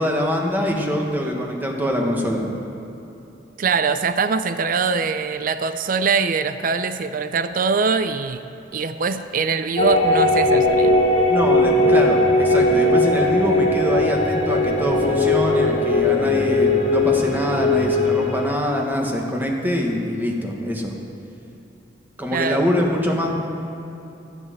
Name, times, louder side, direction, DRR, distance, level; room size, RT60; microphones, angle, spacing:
voice 1, 0.0-2.4 11.3-20.9 22.2-23.3, equal, 10° right, 0 dB, 1.5 m, -24 dB
voice 2, 3.6-8.4 8.7-11.0 22.3-22.6, right 5 dB, 50° right, 11 dB, 0.5 m, -22 dB
sound 1, 9.8-18.5, left 2 dB, 35° left, 1.6 m, -18 dB
13.0 x 7.5 x 7.9 m, 2.9 s
head